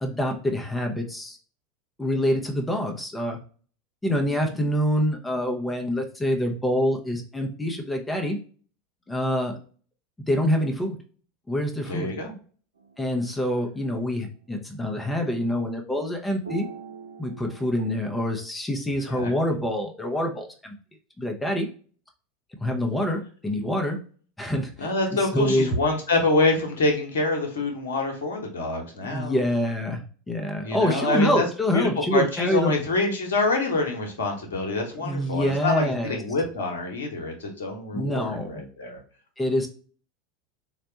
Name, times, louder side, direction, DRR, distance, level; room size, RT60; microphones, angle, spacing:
voice 1, 0.0-1.4 2.0-3.4 4.0-8.4 9.1-9.6 10.3-11.0 11.5-12.1 13.0-16.7 17.2-20.7 21.2-21.7 22.6-24.0 24.4-25.7 29.0-32.7 35.0-36.2 37.9-38.6 39.4-39.7, equal, 10° left, 2 dB, 0.7 m, -26 dB
voice 2, 11.8-12.3 19.1-19.3 24.8-29.4 30.6-31.5 31.7-39.0, left 2 dB, 65° left, 2 dB, 0.9 m, -26 dB
sound 1, 12.8-13.4 16.4-17.9, right 5 dB, 75° right, 0.4 m, -42 dB
4.0 x 2.2 x 2.8 m, 0.41 s
figure-of-eight pair, 80°, 0 cm